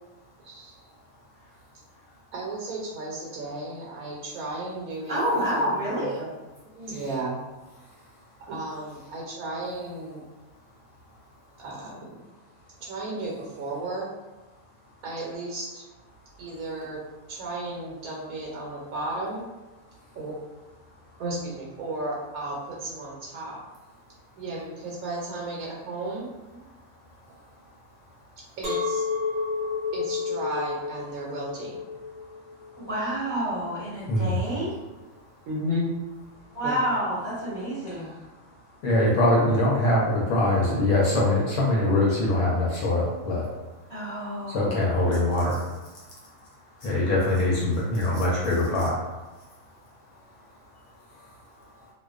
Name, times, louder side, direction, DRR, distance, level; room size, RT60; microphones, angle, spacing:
voice 1, 2.3-5.2 5.5-6.3 6.8-7.4 8.4-10.2 11.6-12.2 12.8-14.1 15.0-15.8 16.4-17.0 17.3-19.4 20.1-20.4 21.2-23.6 24.4-26.3 28.6-29.0 29.9-31.8 35.5-35.9 36.6-36.8, right 1 dB, 75° right, -3 dB, 1.0 m, -34 dB
voice 2, 5.1-6.2 32.8-34.7 36.5-38.1 43.9-45.0, equal, 5° left, -11 dB, 0.8 m, -29 dB
Chink clink, 28.6-33.8, left 5 dB, 50° right, 0.5 m, -31 dB
voice 3, 38.8-43.4 44.5-45.6 46.8-48.9, left 1 dB, 75° left, -4 dB, 1.0 m, -23 dB
2.5 x 2.2 x 2.3 m, 1.2 s
omnidirectional pair, 1.5 m